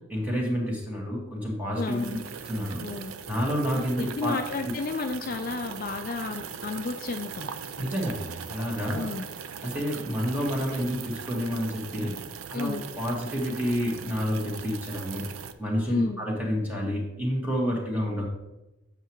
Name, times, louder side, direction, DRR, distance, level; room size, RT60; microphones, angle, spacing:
voice 1, 0.1-2.0 2.4-2.8 3.3-4.3 7.8-9.1 9.6-12.2 12.5-15.3 15.6-18.3, equal, 10° right, -3 dB, 1.7 m, -29 dB
voice 2, 1.7-2.2 2.8-3.1 3.7-7.5 8.9-9.2 12.5-12.8 15.9-16.2, left 3 dB, 45° left, 5 dB, 0.4 m, -32 dB
sound 1, 1.7-15.5, right 7 dB, 90° right, 0.5 m, -40 dB
7.9 x 7.3 x 3.1 m, 0.98 s
head